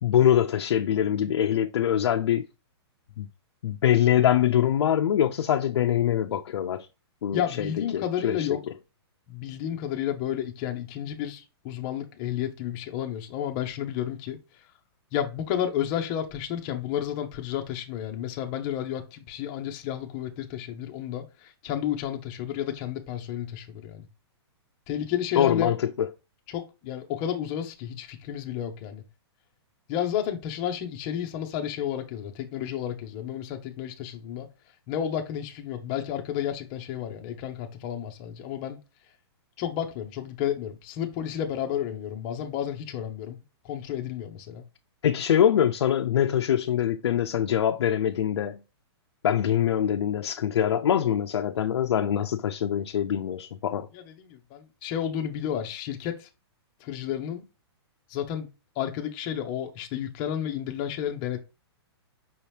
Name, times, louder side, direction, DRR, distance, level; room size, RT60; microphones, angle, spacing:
voice 1, 0.0-2.4 3.2-3.3 3.6-6.9 7.2-8.6 25.3-26.1 45.0-48.6 49.2-53.9, left 10 dB, 80° left, 0.5 m, -24 dB
voice 2, 7.3-8.6 9.3-14.4 15.1-24.0 24.9-25.7 26.5-29.0 29.9-34.5 34.9-38.8 39.6-43.4 43.7-44.6 53.9-54.0 54.3-56.3 56.8-57.4 58.1-58.5 58.8-61.4, left 10 dB, 20° left, 0.6 m, -31 dB
5.5 x 2.8 x 3.2 m
hypercardioid pair, 175°, 14 cm